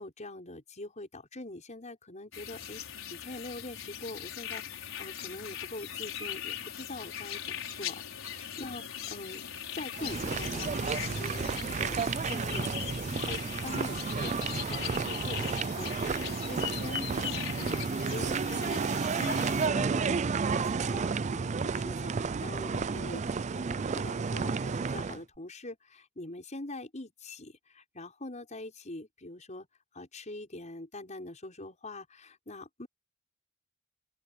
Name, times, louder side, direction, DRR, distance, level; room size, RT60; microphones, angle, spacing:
voice 1, 0.0-2.8 3.1-18.8 19.1-29.7 29.9-32.9, left 2 dB, 35° left, 5.9 m, -44 dB
sound 1, 2.3-19.7, left 9 dB, 80° left, 5.6 m, -40 dB
sound 2, 10.0-25.2, right 5 dB, 35° right, 0.4 m, -31 dB
open air
head